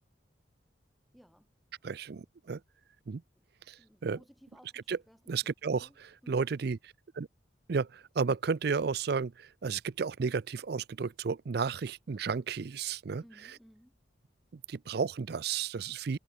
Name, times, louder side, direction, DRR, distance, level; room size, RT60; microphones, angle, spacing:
voice 1, 1.1-1.5 3.3-3.4 3.8-6.0 6.2-6.5 13.2-14.0, equal, ahead, 6.7 m, -59 dB
voice 2, 1.8-2.6 3.1-3.2 3.7-3.8 4.0-4.2 4.9-5.0 5.3-5.9 6.3-6.8 7.2-7.3 7.7-13.2 14.5-16.2, right 5 dB, 55° right, 0.4 m, -32 dB
head